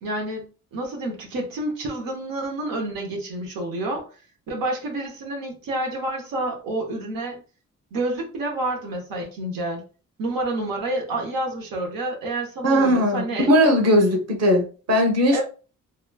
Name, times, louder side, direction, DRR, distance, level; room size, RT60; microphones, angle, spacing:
voice 1, 0.0-4.1 4.5-7.4 7.9-9.8 10.2-13.5 15.3-15.4, right 2 dB, 85° right, 0 dB, 0.8 m, -29 dB
voice 2, 12.6-15.4, equal, 50° right, 3 dB, 1.0 m, -19 dB
2.9 x 2.2 x 2.2 m, 0.35 s
cardioid pair, 70°, 33 cm